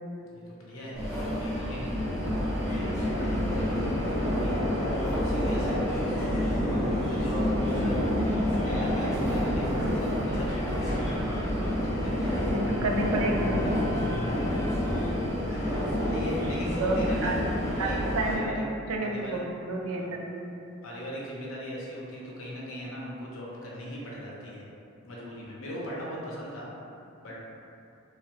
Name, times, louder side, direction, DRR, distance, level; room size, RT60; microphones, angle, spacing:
voice 1, 0.3-4.8 5.1-5.8 6.0-8.0 8.5-10.9 11.6-12.6 13.9-14.4 15.5-17.3 17.8-18.0 18.2-18.6 19.0-19.4 19.8-20.1 20.8-24.7 25.0-26.7 27.2-27.3, equal, 70° left, -5 dB, 0.7 m, -39 dB
sound 1, 0.9-18.4, equal, ahead, 1.0 m, -28 dB
voice 2, 7.8-8.3 12.4-13.6 16.6-17.4 17.8-18.6 18.9-20.5, right 2 dB, 80° right, 0 dB, 0.4 m, -30 dB
sound 2, 8.6-14.8, left 2 dB, 15° left, 0.3 m, -40 dB
3.0 x 2.3 x 2.9 m, 2.6 s
head